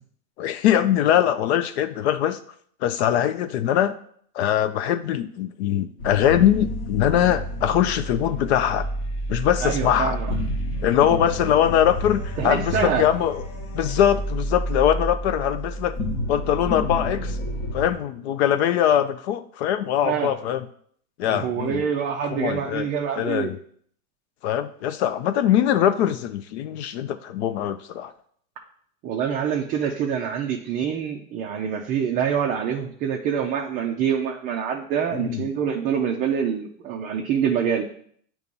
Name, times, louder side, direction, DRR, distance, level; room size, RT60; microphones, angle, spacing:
voice 1, 0.4-2.4 2.8-4.0 4.3-8.9 9.3-10.2 10.8-13.4 13.7-16.0 16.3-17.4 17.7-20.7 21.2-21.8 22.2-22.9 23.2-23.6 24.4-28.1 35.1-35.4, left 10 dB, 55° left, 11 dB, 0.5 m, -22 dB
sound 1, 6.0-17.9, equal, 35° left, 1.1 m, -30 dB
voice 2, 9.6-10.3 12.4-13.1 20.0-20.3 21.2-23.5 29.0-37.8, right 7 dB, 20° right, 1 dB, 0.4 m, -25 dB
8.1 x 3.0 x 5.2 m, 0.62 s
hypercardioid pair, 130°, 41 cm